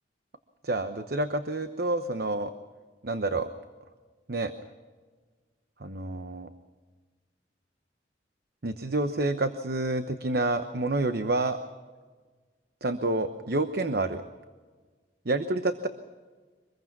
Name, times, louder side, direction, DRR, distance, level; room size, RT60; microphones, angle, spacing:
voice 1, 0.6-2.5 3.0-3.5 4.3-4.5 5.8-6.5 8.6-11.6 12.8-14.2 15.2-15.9, right 2 dB, 60° right, 9 dB, 1.0 m, -28 dB
25.0 x 21.5 x 6.0 m, 1.4 s
head